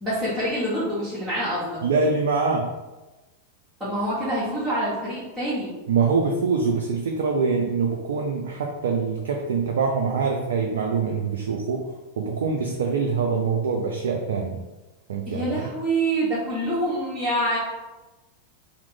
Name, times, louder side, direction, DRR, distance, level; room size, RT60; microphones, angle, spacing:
voice 1, 0.0-1.8 3.8-5.7 15.3-17.6, right 1 dB, 5° right, -13 dB, 1.2 m, -26 dB
voice 2, 1.8-2.7 5.9-14.6 15.1-15.7, right 5 dB, 60° right, 2 dB, 0.3 m, -24 dB
2.9 x 2.0 x 3.7 m, 1.1 s
figure-of-eight pair, 90°, 0 cm